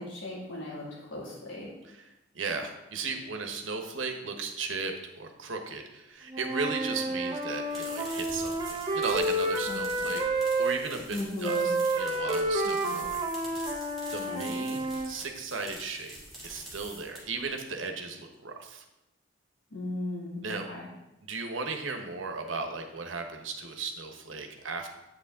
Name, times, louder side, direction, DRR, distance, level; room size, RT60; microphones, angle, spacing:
voice 1, 0.0-1.7 9.7-10.1 11.1-11.7 12.7-13.0 14.2-14.8 19.7-20.9, left 2 dB, 75° left, -5 dB, 2.3 m, -37 dB
voice 2, 2.3-13.2 13.6-13.7 14.1-16.2 16.4-18.8 20.4-20.7 21.2-24.9, right 4 dB, 80° right, 4 dB, 1.1 m, -36 dB
Wind instrument woodwind instrument, 6.3-10.8 11.4-15.1, right 2 dB, 25° right, 1.0 m, -30 dB
sound 1, 7.5-17.4, right 1 dB, ahead, 3.3 m, -46 dB
8.5 x 7.1 x 3.7 m, 0.93 s
head